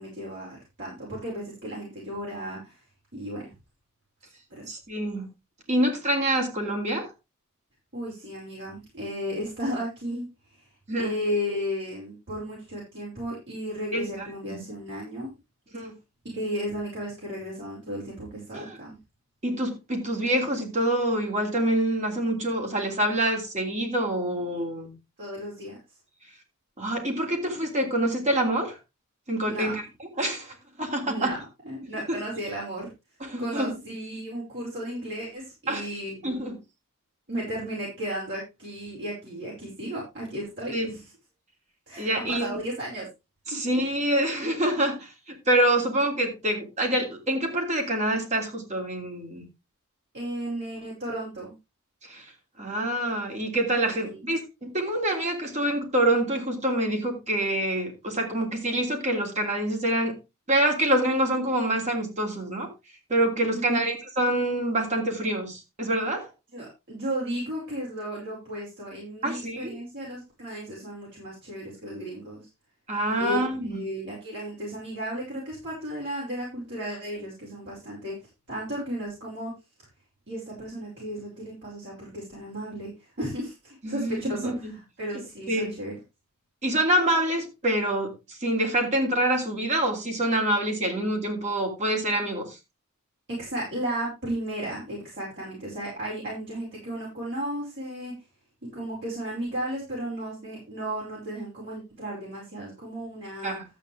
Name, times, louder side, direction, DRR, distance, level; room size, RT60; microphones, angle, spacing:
voice 1, 0.0-2.8 3.1-3.4 4.5-4.7 7.9-10.2 10.5-10.7 11.0-15.3 16.2-19.0 25.2-25.8 29.4-29.8 31.1-31.4 31.7-32.9 33.4-36.3 37.3-41.0 41.9-43.1 43.5-43.6 50.1-51.5 53.9-54.2 63.5-63.8 66.5-72.4 73.2-73.4 73.6-78.2 78.5-79.5 80.3-85.9 93.3-98.1 98.7-103.6, equal, 55° right, -5 dB, 5.4 m, -34 dB
voice 2, 4.7-5.3 5.7-7.1 10.9-11.1 13.9-14.6 15.7-15.9 18.5-18.8 19.4-24.9 26.8-28.8 29.3-29.7 30.2-31.3 32.1-32.2 33.2-33.7 35.7-35.9 36.2-36.6 40.7-40.9 42.0-42.6 43.5-49.5 52.0-52.2 52.6-60.2 60.5-62.7 63.1-66.3 69.2-69.7 72.9-73.8 83.8-84.7 85.1-85.7 86.6-92.6 103.4-103.6, right 1 dB, 35° right, 2 dB, 3.0 m, -26 dB
12.5 x 8.3 x 3.4 m, 0.24 s
head